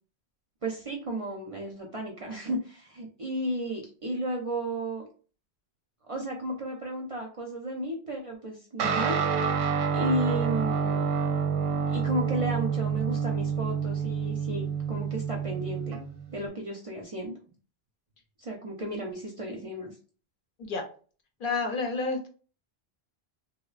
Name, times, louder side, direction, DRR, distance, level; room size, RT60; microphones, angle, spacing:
voice 1, 0.6-5.1 6.1-9.2 9.9-11.1 11.9-16.0 16.3-17.3 18.4-20.0, right 1 dB, 45° right, 0 dB, 0.4 m, -33 dB
Guitar, 8.8-16.5, right 6 dB, 85° right, 0.9 m, -28 dB
voice 2, 21.4-22.3, left 4 dB, 60° left, 3 dB, 0.7 m, -29 dB
3.1 x 2.1 x 2.3 m, 0.39 s
omnidirectional pair, 1.1 m